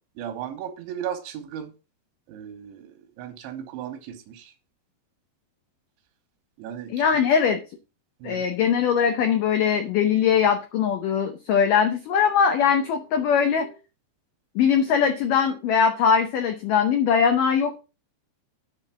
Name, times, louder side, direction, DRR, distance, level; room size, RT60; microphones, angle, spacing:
voice 1, 0.2-1.7 2.3-4.5 6.6-7.0 8.2-8.4, right 9 dB, 85° right, 3.5 m, -36 dB
voice 2, 6.9-7.6 8.2-13.7 14.6-17.8, left 7 dB, 85° left, 1.8 m, -21 dB
10.5 x 4.1 x 5.8 m
omnidirectional pair, 5.2 m